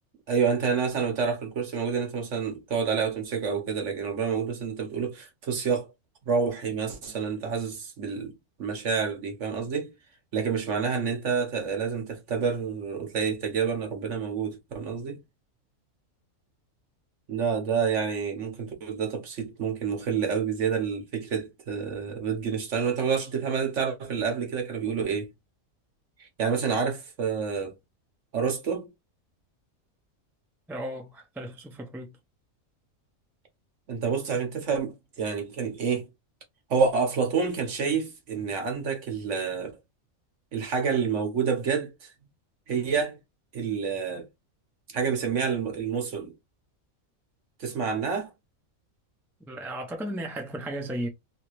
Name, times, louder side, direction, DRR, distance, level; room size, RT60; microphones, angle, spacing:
voice 1, 0.3-5.9 6.3-9.9 10.3-15.2 17.3-25.3 26.2-27.8 28.3-28.9 33.9-36.1 36.7-39.7 40.5-42.1 42.7-43.2 43.5-44.3 44.9-46.3 47.6-48.3, right 6 dB, 60° right, 1.3 m, -28 dB
voice 2, 30.7-32.2 49.5-51.1, right 1 dB, 5° right, 0.5 m, -35 dB
3.2 x 2.9 x 3.0 m
omnidirectional pair, 1.5 m